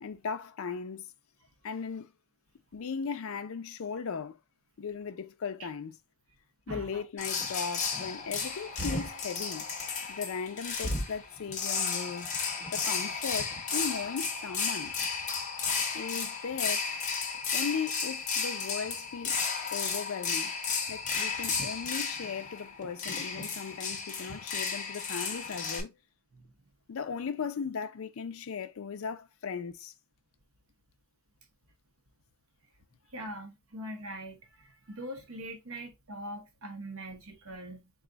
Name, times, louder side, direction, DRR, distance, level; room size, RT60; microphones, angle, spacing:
voice 1, 0.0-1.1 1.6-2.1 2.7-4.4 4.8-6.0 6.7-9.7 10.1-12.3 12.7-14.9 15.9-16.9 17.5-19.4 19.7-20.5 20.9-25.9 26.9-29.9, left 6 dB, 70° left, 0.4 m, -37 dB
voice 2, 6.7-7.0 26.3-26.5 33.1-37.9, right 1 dB, 70° right, 0.9 m, -42 dB
sound 1, 7.2-25.8, left 5 dB, 35° left, 0.8 m, -33 dB
4.0 x 2.3 x 3.8 m
head